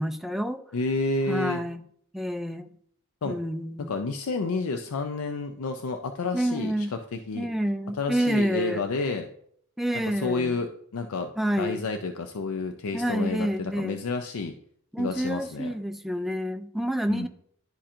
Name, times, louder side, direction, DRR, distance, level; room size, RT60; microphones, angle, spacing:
voice 1, 0.0-0.6 1.3-1.8 2.1-2.7 3.2-3.9 6.3-6.9 7.3-8.8 9.8-10.6 11.4-11.8 12.9-14.0 14.9-17.3, equal, ahead, 8 dB, 0.3 m, -28 dB
voice 2, 0.7-1.6 3.2-3.4 3.8-6.9 7.1-7.5 8.0-9.3 10.2-11.3 11.6-14.5 15.0-15.7 17.1-17.3, left 3 dB, 75° left, 5 dB, 0.5 m, -30 dB
11.0 x 4.3 x 2.5 m, 0.65 s
head